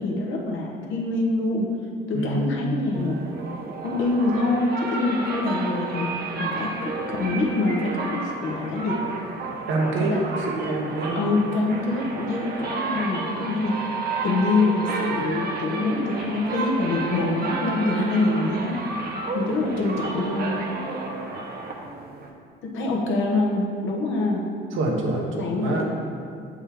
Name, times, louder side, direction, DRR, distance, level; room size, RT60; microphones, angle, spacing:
voice 1, 0.0-1.7 2.1-3.2 3.8-6.1 6.4-9.0 10.0-10.2 11.1-13.8 14.2-18.8 19.3-20.6 22.6-24.5 25.3-25.8, left 2 dB, 80° left, -1 dB, 1.1 m, -25 dB
voice 2, 2.1-2.6 9.7-11.2 24.7-25.8, right 2 dB, 80° right, -1 dB, 1.2 m, -26 dB
sound 1, 2.9-22.3, right 3 dB, 50° right, 1.0 m, -31 dB
7.1 x 5.3 x 3.7 m, 2.3 s
cardioid pair, 90°, 20 cm